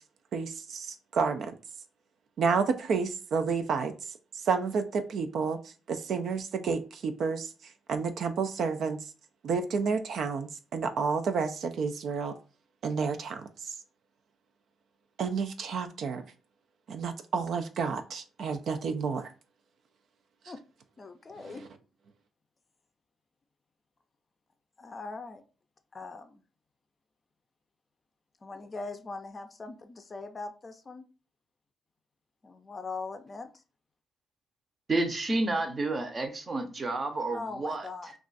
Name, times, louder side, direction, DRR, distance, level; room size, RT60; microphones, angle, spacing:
voice 1, 0.3-1.5 2.4-3.9 4.4-5.6 5.9-7.5 7.9-9.0 9.4-12.3 12.8-13.5 15.2-16.2 16.9-19.3, right 5 dB, 65° right, 0.4 m, -30 dB
voice 2, 21.0-21.6 24.8-25.4 25.9-26.4 28.4-31.1 32.4-33.5 37.3-38.1, left 3 dB, 30° left, 0.5 m, -41 dB
voice 3, 34.9-38.1, right 2 dB, 35° right, 0.7 m, -30 dB
2.4 x 2.4 x 3.8 m
cardioid pair, 90°, 0 cm